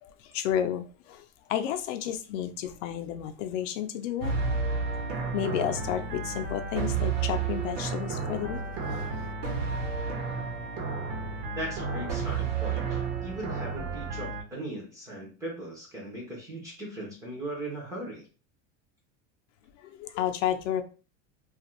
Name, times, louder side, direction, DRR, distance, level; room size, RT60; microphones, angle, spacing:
voice 1, 0.0-4.3 5.3-9.3 19.8-20.8, left 10 dB, 75° left, 0.5 m, -32 dB
sound 1, 4.2-14.4, right 5 dB, 85° right, 1.0 m, -31 dB
voice 2, 11.5-18.2, right 1 dB, 10° right, 0.4 m, -38 dB
2.5 x 2.4 x 2.9 m
supercardioid pair, 170°, 37 cm